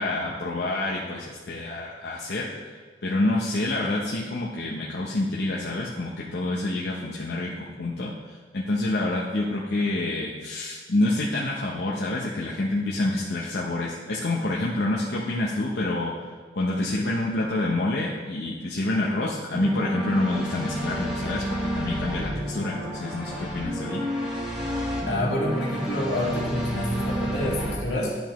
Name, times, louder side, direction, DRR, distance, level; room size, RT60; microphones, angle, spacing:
voice 1, 0.0-2.7 3.0-24.0, left 2 dB, 70° left, -4 dB, 0.7 m, -27 dB
sound 1, 19.5-27.8, equal, 5° right, 1.5 m, -30 dB
voice 2, 25.0-28.2, left 1 dB, 90° left, -4 dB, 1.8 m, -28 dB
10.5 x 5.2 x 3.0 m, 1.5 s
head